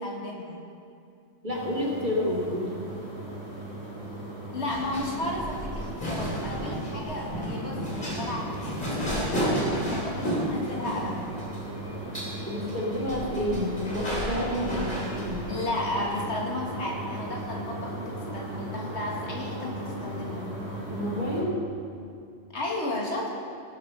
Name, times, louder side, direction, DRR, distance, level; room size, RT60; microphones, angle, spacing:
voice 1, 0.0-0.6 4.5-11.3 15.5-20.5 22.5-23.3, left 2 dB, 70° left, -1 dB, 2.2 m, -33 dB
voice 2, 1.4-2.8 12.4-15.4 20.9-21.6, left 1 dB, 45° right, -3 dB, 2.2 m, -29 dB
sound 1, 1.5-21.4, right 1 dB, 25° right, 3.4 m, -37 dB
sound 2, 4.7-16.2, equal, 45° left, 3.1 m, -33 dB
17.0 x 7.8 x 5.4 m, 2.5 s
omnidirectional pair, 1.2 m